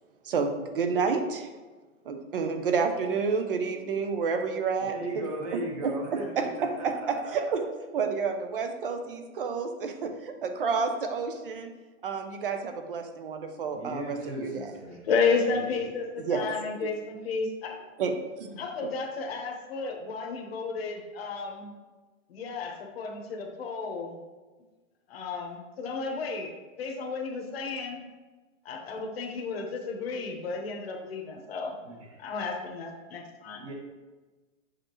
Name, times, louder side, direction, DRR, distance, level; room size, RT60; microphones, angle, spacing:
voice 1, 0.3-1.5 2.1-5.2 5.5-7.6 7.9-11.7 12.0-14.7 16.2-16.5 18.0-18.1 18.4-18.6, right 5 dB, 45° right, 6 dB, 0.6 m, -30 dB
voice 2, 4.8-7.6 13.7-15.0 15.3-15.9 31.8-32.3 33.5-33.7, right 2 dB, 25° right, 0 dB, 1.0 m, -38 dB
voice 3, 15.1-17.8 18.6-21.7 22.3-24.2 25.1-28.0 28.6-31.8 32.2-33.6, left 4 dB, 50° left, 1 dB, 1.0 m, -32 dB
7.5 x 5.0 x 3.0 m, 1.3 s
hypercardioid pair, 180°, 40 cm